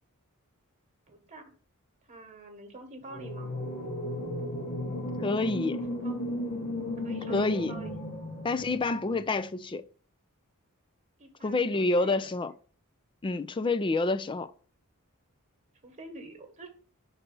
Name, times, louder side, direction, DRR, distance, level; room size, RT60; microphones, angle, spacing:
voice 1, 1.1-1.5 2.1-3.5 6.0-6.2 7.0-7.9 11.2-12.2 15.8-16.7, right 2 dB, 35° right, 1.2 m, -46 dB
sound 1, 3.1-9.2, left 1 dB, 45° left, 1.1 m, -35 dB
voice 2, 5.2-5.8 7.3-7.8 8.4-9.8 11.4-12.5 13.2-14.5, left 3 dB, 20° left, 0.4 m, -28 dB
5.8 x 4.0 x 5.3 m
head